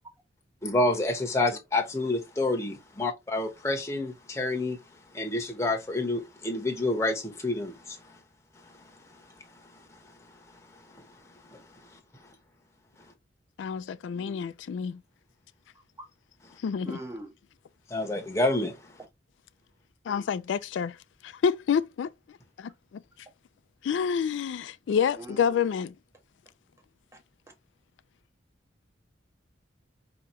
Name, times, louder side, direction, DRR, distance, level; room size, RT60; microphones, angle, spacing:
voice 1, 0.6-4.8 5.1-8.0 11.5-11.6 17.9-18.8, left 2 dB, 15° left, 1.0 m, -28 dB
voice 2, 13.6-15.0 16.6-17.0 20.1-21.0 21.2-22.1 22.6-23.0 23.8-25.9, left 7 dB, 80° left, 0.3 m, -28 dB
voice 3, 14.1-14.4 16.0-16.1 16.8-17.3 25.2-25.4, right 1 dB, 15° right, 0.8 m, -41 dB
4.8 x 2.9 x 3.1 m
head